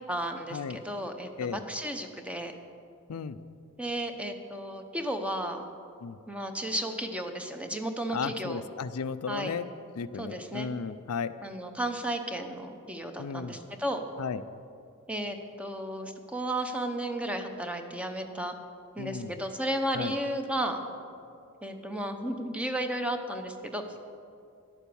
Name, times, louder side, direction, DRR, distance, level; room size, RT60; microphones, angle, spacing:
voice 1, 0.1-2.5 3.8-5.6 6.3-8.6 9.3-9.5 10.1-10.7 11.4-14.0 15.1-18.5 19.0-20.9 21.6-23.8, right 1 dB, 5° right, 5 dB, 0.8 m, -33 dB
voice 2, 8.1-9.7 10.0-11.3 13.2-13.6 14.2-14.4 19.0-19.3 20.0-20.1, left 6 dB, 80° left, 13 dB, 0.4 m, -34 dB
11.5 x 9.0 x 7.0 m, 2.5 s
head